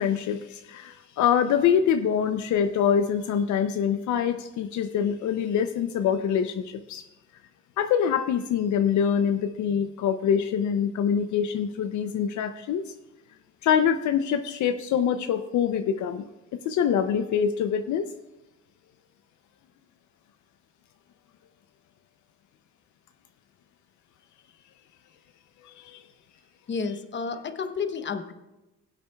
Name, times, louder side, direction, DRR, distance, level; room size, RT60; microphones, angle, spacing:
voice 1, 0.0-7.0 7.8-12.8 13.6-16.3 16.6-18.1 25.6-26.0, left 8 dB, 75° left, 9 dB, 0.6 m, -25 dB
voice 2, 26.7-28.3, left 5 dB, 40° left, 8 dB, 0.9 m, -31 dB
20.5 x 8.0 x 2.3 m, 1.0 s
cardioid pair, 90°, 30 cm